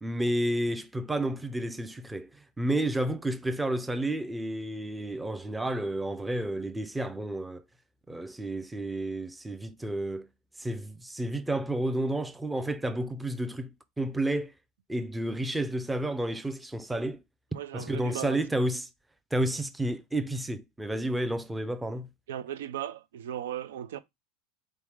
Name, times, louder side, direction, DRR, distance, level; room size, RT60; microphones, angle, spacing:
voice 1, 0.0-7.6 8.1-10.3 10.6-14.5 14.9-17.2 17.7-18.9 19.3-22.1, right 1 dB, 5° right, 0.5 m, -31 dB
voice 2, 17.5-18.4 22.3-24.0, right 11 dB, 90° right, 0.4 m, -37 dB
4.0 x 3.1 x 3.5 m
supercardioid pair, 125°, 0 cm